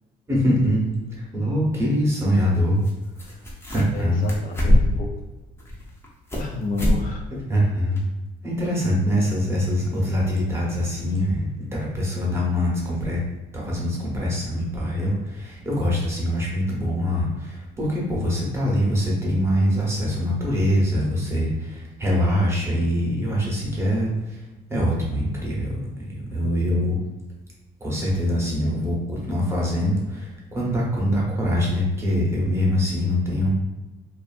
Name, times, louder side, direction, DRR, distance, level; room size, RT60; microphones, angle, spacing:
voice 1, 0.3-2.9 3.2-3.3 3.7-4.4 7.5-8.1 8.4-13.2 13.5-24.4 24.7-25.8 26.1-27.0 27.8-33.6, equal, 15° right, -4 dB, 0.9 m, -23 dB
sound 1, 1.1-1.2 2.8-2.9 3.2-4.0 4.3-5.1 5.6-6.5 6.8-7.0 7.3-7.4 8.0-8.1, left 1 dB, 15° left, 0.7 m, -22 dB
voice 2, 3.9-5.1 6.4-7.2 26.4-26.5, left 3 dB, 55° left, 1 dB, 0.4 m, -31 dB
2.5 x 2.4 x 2.4 m, 1.1 s
cardioid pair, 110°, 17 cm